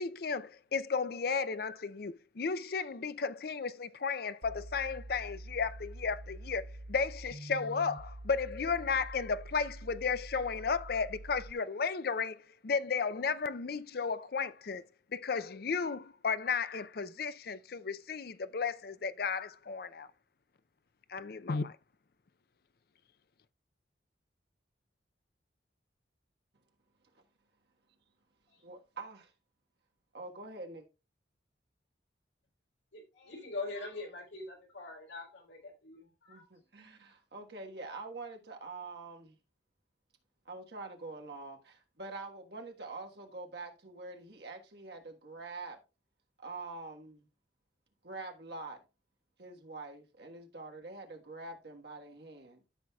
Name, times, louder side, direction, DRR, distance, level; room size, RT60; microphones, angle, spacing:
voice 1, 0.0-14.8 15.1-20.1 21.1-21.7, left 5 dB, 55° left, 0.5 m, -34 dB
sound 1, 4.4-11.5, right 1 dB, 40° right, 0.6 m, -46 dB
voice 2, 28.6-29.3 30.1-30.9 36.3-39.4 40.4-45.8 46.4-47.3 48.0-48.8 49.4-52.6, right 3 dB, 60° right, 1.5 m, -45 dB
voice 3, 32.9-36.4, left 3 dB, 80° left, 3.7 m, -43 dB
13.5 x 6.3 x 2.3 m
head